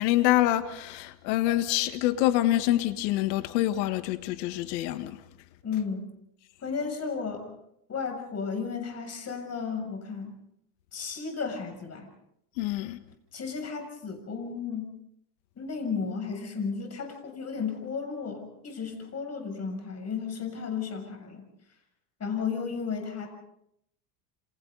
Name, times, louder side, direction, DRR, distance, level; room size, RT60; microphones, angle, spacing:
voice 1, 0.0-5.2 12.6-13.0, left 14 dB, 80° left, 1.7 m, -26 dB
voice 2, 5.6-6.1 6.6-7.5 7.9-10.4 10.9-12.1 13.3-14.9 15.6-21.4 22.2-23.3, left 5 dB, 30° left, 7.1 m, -33 dB
29.0 x 27.0 x 4.0 m
supercardioid pair, 115°, 50 cm